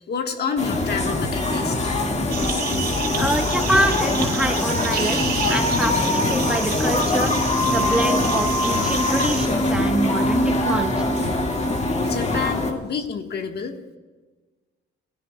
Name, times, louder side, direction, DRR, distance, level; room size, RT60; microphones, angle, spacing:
voice 1, 0.0-1.9 5.9-6.0 10.2-10.3 11.1-11.7 12.0-14.0, left 5 dB, 55° left, 5 dB, 1.4 m, -29 dB
sound 1, 0.6-12.7, left 2 dB, 35° left, 1.8 m, -22 dB
sound 2, 2.3-9.5, right 6 dB, 55° right, 3.1 m, -30 dB
voice 2, 3.2-11.0, right 1 dB, 5° right, 4 dB, 1.1 m, -26 dB
18.0 x 15.0 x 2.2 m, 1.3 s
cardioid pair, 90°, 20 cm